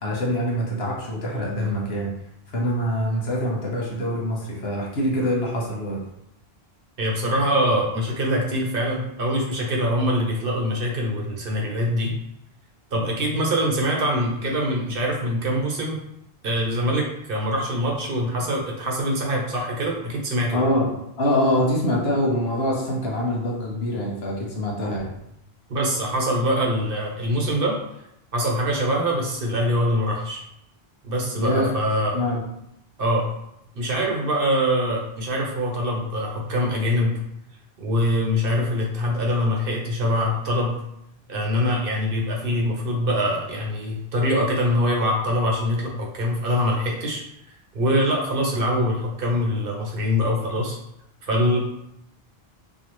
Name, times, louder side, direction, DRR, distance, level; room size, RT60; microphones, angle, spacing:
voice 1, 0.0-2.1 2.5-6.0 13.3-13.4 20.5-20.9 21.2-25.1 31.4-31.7 32.1-32.4, equal, 80° left, -3 dB, 1.2 m, -24 dB
voice 2, 7.0-12.1 12.9-16.0 16.4-20.7 25.7-27.8 28.3-30.4 31.0-32.2 33.0-33.3 33.7-37.2 37.8-40.8 41.3-47.2 47.7-50.8 51.2-51.6, equal, 60° right, -1 dB, 1.0 m, -24 dB
4.8 x 2.3 x 3.0 m, 0.80 s
omnidirectional pair, 1.0 m